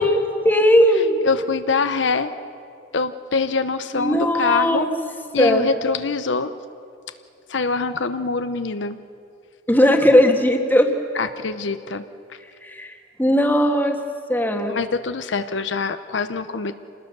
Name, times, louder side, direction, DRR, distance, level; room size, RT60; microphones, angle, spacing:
voice 1, 0.0-1.2 3.9-4.9 5.4-5.7 9.7-10.9 12.6-12.9 13.2-14.0 14.3-14.7, equal, 10° left, 4 dB, 1.7 m, -18 dB
voice 2, 1.2-2.3 2.9-4.9 5.3-6.5 7.5-9.0 11.1-12.1 14.7-16.7, left 4 dB, 75° left, 10 dB, 0.7 m, -24 dB
26.5 x 20.0 x 6.8 m, 2.4 s
head